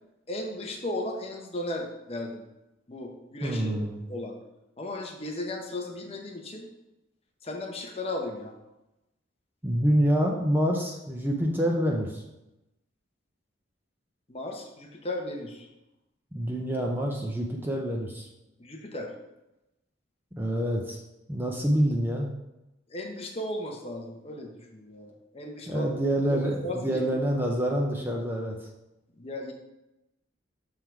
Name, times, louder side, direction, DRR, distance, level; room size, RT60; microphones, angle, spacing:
voice 1, 0.3-2.4 2.9-3.8 4.1-4.3 4.8-6.7 7.4-8.5 14.3-15.7 18.6-19.1 22.9-25.9 26.3-27.0 29.2-29.5, left 1 dB, 30° left, 1 dB, 0.8 m, -35 dB
voice 2, 3.4-4.0 9.6-12.2 16.3-18.3 20.4-21.0 21.3-22.3 25.7-28.6, equal, 10° right, 0 dB, 0.6 m, -27 dB
6.3 x 3.7 x 4.5 m, 0.95 s
head